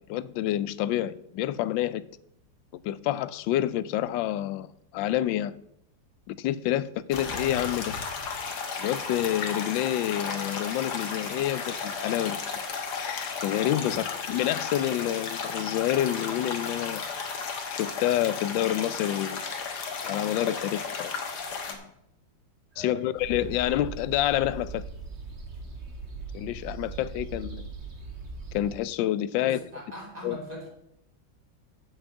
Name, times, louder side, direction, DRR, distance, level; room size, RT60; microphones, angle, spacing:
voice 1, 0.1-2.0 2.7-4.7 4.9-5.6 6.3-8.0 8.8-12.4 13.0-17.1 17.7-19.4 20.0-21.1 21.5-21.8 22.8-24.9 26.3-27.7 28.5-29.6 30.2-30.4, left 13 dB, 85° left, 1.3 m, -28 dB
sound 1, 7.1-21.7, left 5 dB, 60° left, 1.9 m, -34 dB
voice 2, 22.7-23.3 29.4-30.7, equal, 20° right, 3.1 m, -41 dB
sound 2, 23.2-28.8, right 3 dB, 35° right, 2.0 m, -40 dB
7.9 x 6.3 x 7.8 m
omnidirectional pair, 2.0 m